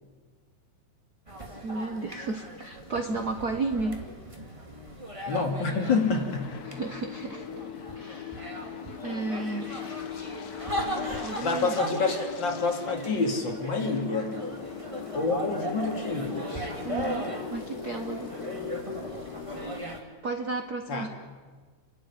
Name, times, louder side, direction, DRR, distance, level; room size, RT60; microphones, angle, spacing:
sound 1, 1.3-20.0, right 1 dB, 10° right, 2.0 m, -38 dB
voice 1, 1.6-4.0 4.4-4.5 6.6-7.5 7.9-8.6 9.0-9.7 11.2-11.7 16.8-18.3 20.2-21.1, right 3 dB, 75° right, 6 dB, 0.8 m, -33 dB
voice 2, 5.3-6.5 11.4-14.4 15.1-16.7 20.9-21.1, left 4 dB, 40° left, 2 dB, 3.1 m, -28 dB
sound 2, 5.8-19.8, left 8 dB, 65° left, 0.9 m, -40 dB
29.5 x 12.5 x 9.7 m, 1.4 s
omnidirectional pair, 3.5 m